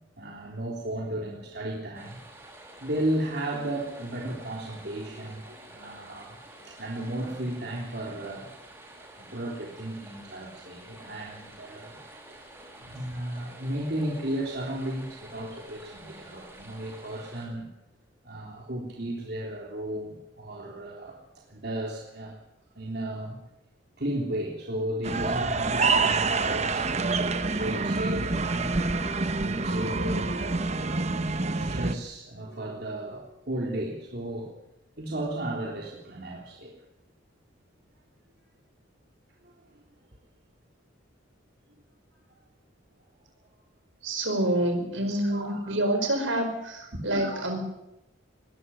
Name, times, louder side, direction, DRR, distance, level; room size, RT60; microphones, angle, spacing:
voice 1, 0.2-2.2 2.8-6.4 6.6-8.5 9.2-12.0 12.3-12.4 12.8-17.7 18.3-22.4 22.8-23.4 24.0-28.8 29.4-31.0 31.3-34.5 35.0-36.7 39.4-39.8 45.1-45.7 47.1-47.3, right 1 dB, 55° right, -1 dB, 3.5 m, -34 dB
sound 1, 1.9-17.4, right 1 dB, 15° right, 6.4 m, -49 dB
sound 2, 25.0-31.9, right 3 dB, 35° right, 1.0 m, -27 dB
voice 2, 44.0-47.6, right 1 dB, 75° right, 5 dB, 4.9 m, -27 dB
20.5 x 13.0 x 9.9 m, 0.87 s
head